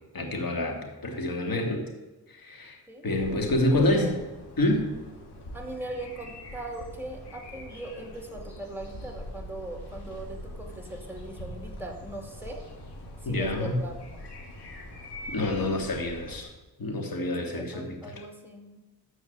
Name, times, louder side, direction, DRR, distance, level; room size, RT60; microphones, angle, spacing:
voice 1, 0.1-1.8 2.3-2.8 3.0-4.1 4.6-4.9 13.2-13.8 15.3-16.5 16.8-18.1, left 1 dB, 60° left, 2 dB, 2.6 m, -27 dB
sound 1, 3.1-16.4, left 1 dB, 85° left, 2.5 m, -43 dB
voice 2, 3.7-4.1 5.5-12.6 13.2-14.2 17.5-18.8, right 2 dB, 5° right, 2 dB, 2.5 m, -39 dB
13.5 x 4.8 x 8.2 m, 1.1 s
wide cardioid pair, 90°, 39 cm